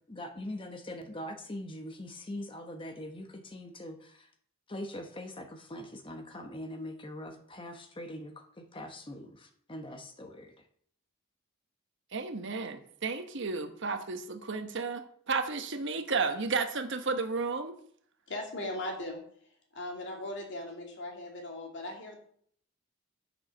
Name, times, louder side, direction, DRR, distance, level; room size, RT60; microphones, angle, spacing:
voice 1, 0.1-4.3 4.7-10.5, left 1 dB, 25° left, 6 dB, 0.9 m, -42 dB
voice 2, 12.1-17.8, right 4 dB, 60° right, 8 dB, 1.1 m, -33 dB
voice 3, 18.3-19.2 19.7-22.2, left 1 dB, 55° left, 0 dB, 2.5 m, -38 dB
8.2 x 6.3 x 6.3 m, 0.62 s
head